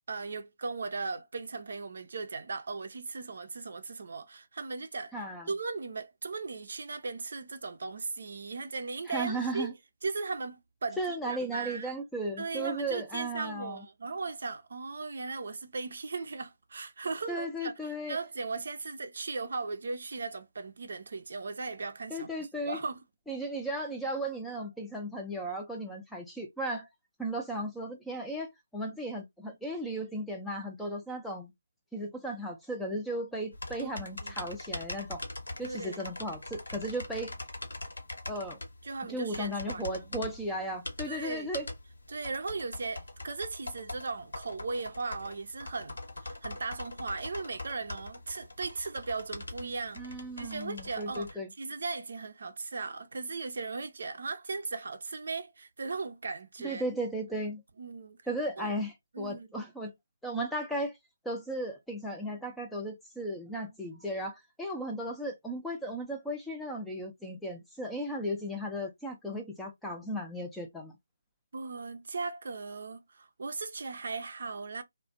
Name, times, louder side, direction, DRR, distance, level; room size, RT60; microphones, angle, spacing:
voice 1, 0.1-5.1 5.5-9.7 10.0-11.9 12.4-23.0 33.8-34.3 35.6-36.0 38.8-40.1 41.0-41.5 42.1-50.0 50.4-51.3 51.6-56.8 57.8-58.2 58.6-58.7 59.1-59.5 71.5-74.8, right 4 dB, 55° right, 0.5 m, -37 dB
voice 2, 5.1-5.5 9.1-9.7 11.0-13.8 17.3-18.2 22.1-22.8 23.3-26.9 27.2-31.5 31.9-35.2 35.6-37.3 38.3-38.6 39.1-41.7 50.0-51.5 56.6-57.6 58.3-59.9 60.2-60.9 61.2-70.9, right 1 dB, 5° left, 0.5 m, -35 dB
sound 1, 33.5-51.3, left 2 dB, 75° left, 1.0 m, -42 dB
2.4 x 2.1 x 2.4 m
figure-of-eight pair, 150°, 0 cm